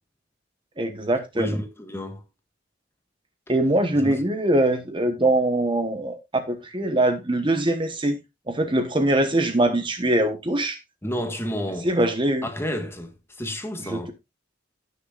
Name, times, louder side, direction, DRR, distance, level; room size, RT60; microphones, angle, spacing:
voice 1, 0.8-1.5 3.5-8.2 8.5-10.8 11.8-12.5 13.9-14.1, right 1 dB, 25° right, 1.2 m, -22 dB
voice 2, 1.3-2.2 3.9-4.2 11.0-11.9 12.4-14.1, equal, 15° left, 1.6 m, -31 dB
17.0 x 6.5 x 2.5 m
head